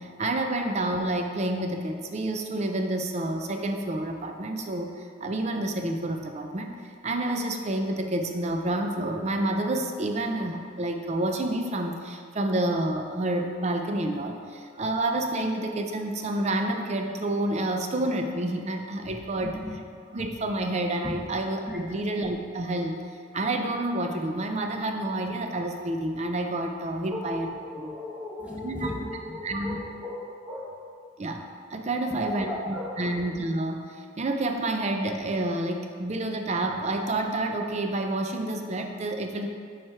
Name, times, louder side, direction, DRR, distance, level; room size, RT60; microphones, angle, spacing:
voice 1, 0.0-19.6 20.1-23.0 23.3-27.5 27.8-27.9 28.6-28.9 29.4-29.8 31.2-31.4 31.7-39.5, right 1 dB, 35° right, 4 dB, 0.5 m, -29 dB
voice 2, 19.4-19.8 21.0-21.1 21.7-21.8 27.1-30.7 32.1-33.2, left 1 dB, 5° right, -4 dB, 1.1 m, -36 dB
7.4 x 4.9 x 4.4 m, 2.2 s
head